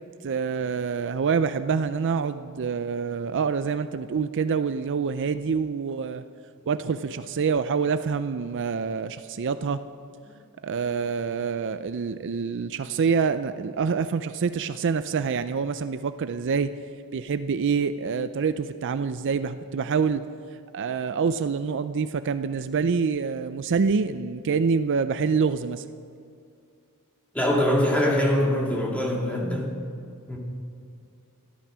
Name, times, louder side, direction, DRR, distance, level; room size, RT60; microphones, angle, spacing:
voice 1, 0.2-6.2 6.7-9.8 10.6-16.7 17.1-20.2 20.7-25.8, right 5 dB, 55° right, 11 dB, 0.4 m, -26 dB
voice 2, 27.3-29.7 30.3-30.4, left 1 dB, 5° left, -2 dB, 2.4 m, -23 dB
13.5 x 12.0 x 6.1 m, 2.4 s
head